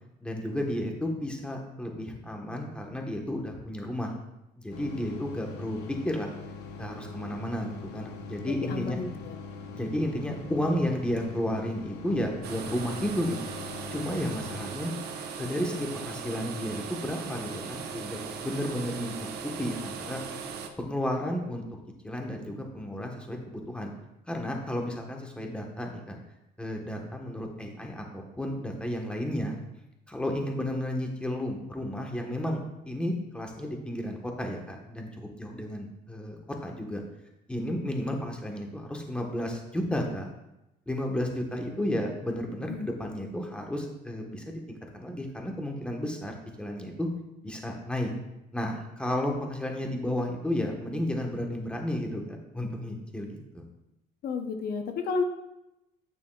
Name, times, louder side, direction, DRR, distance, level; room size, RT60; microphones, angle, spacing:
voice 1, 0.2-4.1 4.6-6.3 6.8-9.0 9.7-13.4 13.9-14.9 15.4-20.2 20.8-21.6 22.0-23.9 24.3-26.1 26.6-29.6 30.1-37.0 37.5-40.3 40.9-47.1 47.4-48.1 48.5-53.6, left 1 dB, 5° left, 1 dB, 1.2 m, -32 dB
sound 1, 4.7-14.7, left 4 dB, 85° left, 1.0 m, -42 dB
voice 2, 8.7-9.4 42.7-42.9 54.2-55.2, left 5 dB, 65° left, 6 dB, 0.8 m, -31 dB
sound 2, 12.4-20.7, right 6 dB, 70° right, 0.8 m, -38 dB
9.2 x 6.8 x 2.4 m, 0.91 s
cardioid pair, 110°, 17 cm